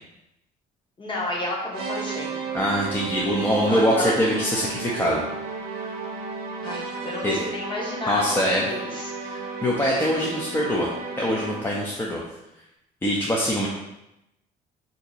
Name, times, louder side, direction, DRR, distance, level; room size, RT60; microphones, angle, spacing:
voice 1, 1.0-2.4 3.7-4.1 6.6-9.1, left 1 dB, 30° left, -3 dB, 1.0 m, -31 dB
sound 1, 1.7-11.8, right 4 dB, 70° right, 0.8 m, -33 dB
voice 2, 2.5-5.2 5.7-5.9 7.2-7.4 8.1-8.6 9.2-10.9 11.2-12.2 13.0-13.7, equal, 10° left, -4 dB, 0.5 m, -23 dB
2.8 x 2.6 x 4.0 m, 0.89 s
cardioid pair, 110°, 17 cm